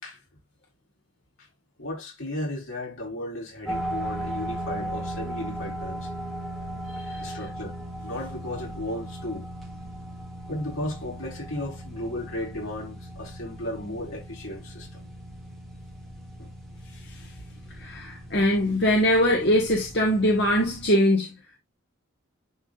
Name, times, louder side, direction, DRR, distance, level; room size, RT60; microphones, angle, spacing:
voice 1, 1.8-6.1 7.2-7.8 8.0-9.5 10.5-15.0 16.4-16.5, left 1 dB, 80° left, 5.4 m, -35 dB
sound 1, 3.7-20.9, right 1 dB, ahead, 2.5 m, -37 dB
voice 2, 17.8-21.3, equal, 55° left, 1.8 m, -22 dB
11.0 x 4.9 x 2.5 m
head